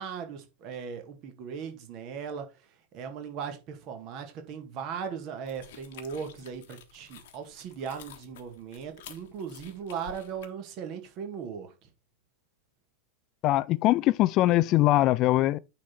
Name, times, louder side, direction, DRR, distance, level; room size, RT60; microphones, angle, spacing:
voice 1, 0.0-2.5 2.9-11.9, right 7 dB, 40° right, 1.8 m, -38 dB
sound 1, 5.5-10.5, left 9 dB, 55° left, 1.2 m, -51 dB
voice 2, 13.4-15.6, left 16 dB, 35° left, 0.4 m, -22 dB
9.7 x 4.1 x 4.4 m
figure-of-eight pair, 90°, 0 cm